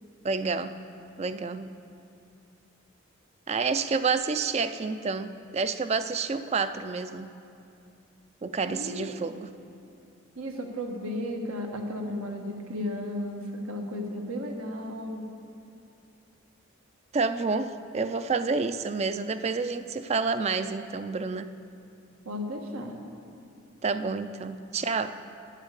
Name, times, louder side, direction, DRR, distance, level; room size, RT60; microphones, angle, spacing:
voice 1, 0.2-0.7 1.2-1.8 3.5-7.3 8.4-9.5 17.1-21.5 23.8-25.2, right 4 dB, 30° right, 11 dB, 0.3 m, -29 dB
voice 2, 8.7-9.0 10.3-15.2 22.2-22.9, left 1 dB, 85° right, 2 dB, 1.4 m, -34 dB
9.6 x 8.3 x 8.2 m, 2.5 s
head